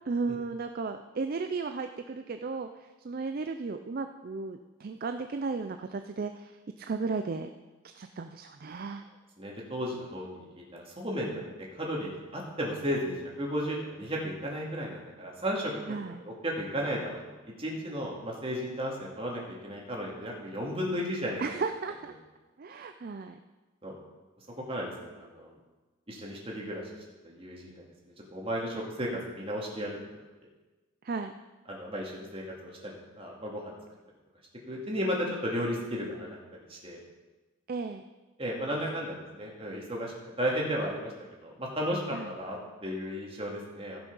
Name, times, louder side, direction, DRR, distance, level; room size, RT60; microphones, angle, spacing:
voice 1, 0.0-7.5 7.9-9.0 15.9-16.2 21.4-22.1 22.6-23.4 31.0-31.3 37.7-38.0 42.1-42.3, right 4 dB, 45° right, 7 dB, 0.4 m, -35 dB
voice 2, 9.4-11.4 11.7-15.8 16.2-17.2 17.6-21.4 23.8-24.0 24.7-25.5 26.1-26.8 27.2-30.2 31.7-33.7 34.7-37.0 38.4-41.1 41.4-44.0, equal, 25° right, -2 dB, 2.3 m, -34 dB
15.5 x 6.0 x 5.4 m, 1.2 s
head